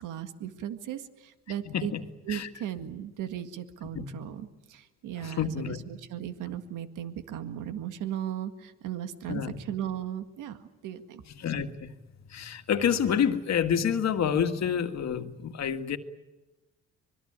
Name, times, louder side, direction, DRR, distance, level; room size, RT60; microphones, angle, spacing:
voice 1, 0.0-1.9 2.3-11.2, right 10 dB, 90° right, 9 dB, 1.8 m, -37 dB
voice 2, 1.7-2.0 2.3-2.5 3.9-4.1 5.2-5.8 9.3-9.6 11.4-11.9 12.3-16.0, left 8 dB, 60° left, 7 dB, 1.9 m, -28 dB
25.5 x 22.0 x 8.8 m, 1.1 s
cardioid pair, 90°, 30 cm